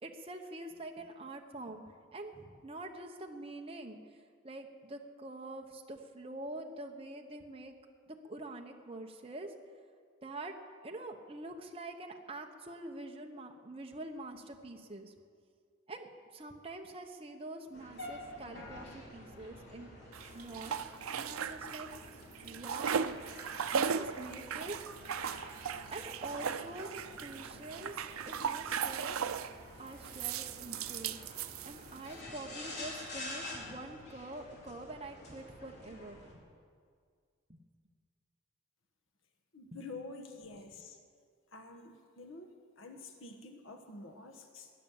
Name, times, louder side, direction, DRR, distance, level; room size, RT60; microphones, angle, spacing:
voice 1, 0.0-4.0 4.4-7.7 8.1-9.5 10.2-10.6 10.8-15.1 15.9-19.9 20.3-20.8 21.1-21.9 22.4-23.2 23.7-24.8 25.9-28.0 28.2-29.2 29.8-31.2 31.6-36.4 37.5-37.6 39.7-39.8, right 2 dB, 25° right, 2 dB, 1.0 m, -45 dB
sound 1, 17.7-36.3, left 1 dB, 50° left, 3.7 m, -49 dB
sound 2, 20.1-22.1 22.3-29.6 30.0-32.1, right 7 dB, 90° right, 0.6 m, -37 dB
voice 2, 39.5-41.0 41.5-44.7, left 3 dB, 70° left, 5 dB, 1.3 m, -48 dB
18.5 x 9.8 x 7.2 m, 2.1 s
head